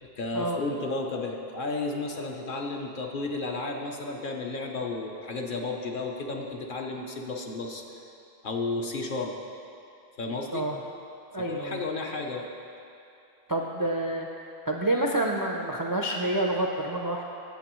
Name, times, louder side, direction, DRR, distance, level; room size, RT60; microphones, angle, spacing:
voice 1, 0.0-8.0 8.4-9.4 10.2-10.7 11.3-12.5, left 3 dB, 55° left, 1 dB, 0.9 m, -33 dB
voice 2, 11.3-11.8 13.5-14.3 14.7-17.3, right 1 dB, 30° right, 0 dB, 0.4 m, -28 dB
16.5 x 6.8 x 3.1 m, 2.8 s
omnidirectional pair, 1.1 m